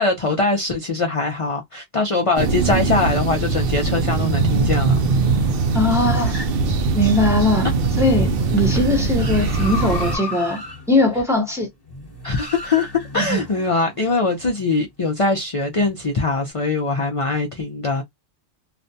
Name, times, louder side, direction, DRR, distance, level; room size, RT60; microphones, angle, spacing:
voice 1, 0.0-5.1 12.2-18.0, left 3 dB, 50° left, 0.4 m, -22 dB
sound 1, 2.4-10.2, right 4 dB, 60° right, 0.6 m, -21 dB
sound 2, 4.7-14.6 15.7-16.5, left 2 dB, 20° left, 1.0 m, -36 dB
voice 2, 5.7-6.4 6.9-7.7 8.0-10.6 10.9-11.7 13.1-13.4, left 1 dB, 5° right, 0.7 m, -20 dB
2.5 x 2.2 x 2.6 m
omnidirectional pair, 1.3 m